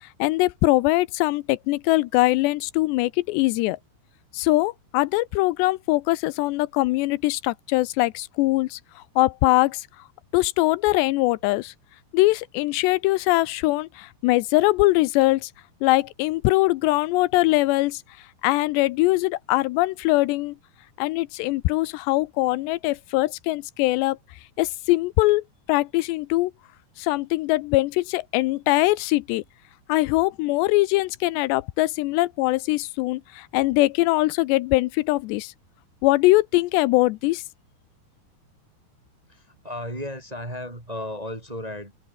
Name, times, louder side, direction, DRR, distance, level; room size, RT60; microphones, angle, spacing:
voice 1, 0.2-3.8 4.3-9.9 10.3-11.7 12.1-15.5 15.8-18.0 18.4-20.6 21.0-24.2 24.6-26.5 27.0-29.4 29.9-35.5 36.0-37.4, left 20 dB, 85° left, 2.8 m, -22 dB
voice 2, 39.2-42.0, left 1 dB, 10° right, 2.4 m, -34 dB
omnidirectional pair, 5.0 m